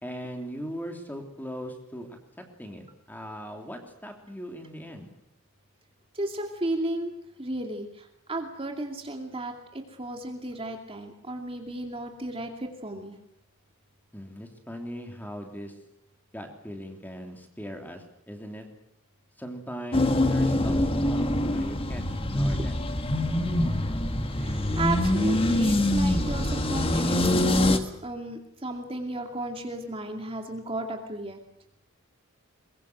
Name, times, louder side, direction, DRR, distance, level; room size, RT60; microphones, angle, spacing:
voice 1, 0.0-2.1 2.4-5.1 14.1-15.7 16.3-18.7 19.4-22.8, equal, 10° left, 4 dB, 3.2 m, -39 dB
voice 2, 6.1-13.2 24.4-31.4, right 2 dB, 25° right, 3 dB, 2.5 m, -34 dB
sound 1, 19.9-27.8, left 1 dB, 25° left, 1.7 m, -24 dB
22.5 x 22.5 x 8.0 m, 0.74 s
head